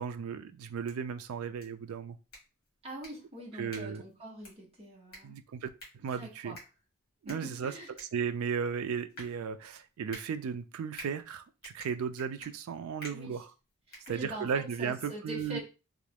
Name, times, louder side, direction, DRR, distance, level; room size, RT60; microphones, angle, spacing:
voice 1, 0.0-2.2 3.5-4.0 5.2-6.6 7.2-13.5 14.1-15.6, right 6 dB, 75° right, 9 dB, 0.3 m, -35 dB
sound 1, 0.6-14.8, equal, 45° left, 1.5 m, -53 dB
voice 2, 2.8-5.4 6.1-6.6 7.3-7.9 12.4-12.5 13.1-13.4 13.9-15.6, right 1 dB, 25° right, -2 dB, 0.9 m, -44 dB
3.0 x 2.5 x 3.4 m, 0.31 s
head